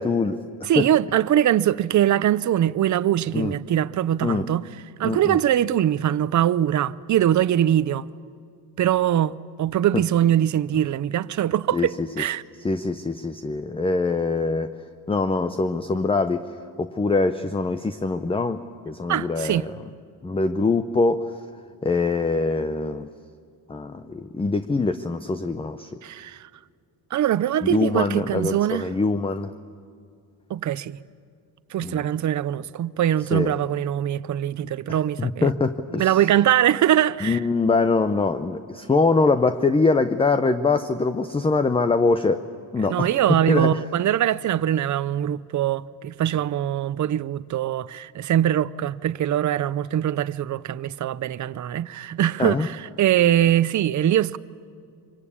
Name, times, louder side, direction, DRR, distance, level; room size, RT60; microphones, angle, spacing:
voice 1, 0.0-0.8 3.3-3.6 4.2-4.5 5.0-5.4 11.7-12.2 12.6-14.7 15.1-16.4 16.8-19.8 20.2-21.3 21.8-23.1 23.7-25.9 27.7-29.5 31.8-32.1 33.3-33.6 34.9-36.2 37.2-42.4 42.7-43.2 43.5-43.8 52.4-52.7, left 3 dB, 15° left, 0.6 m, -23 dB
voice 2, 0.7-4.6 5.0-8.1 8.8-12.4 19.1-19.6 26.0-26.5 27.1-28.9 30.5-31.0 31.7-35.5 35.9-37.4 42.8-54.4, right 11 dB, 45° right, 0.6 m, -22 dB
25.0 x 25.0 x 8.6 m
cardioid pair, 150°, 42 cm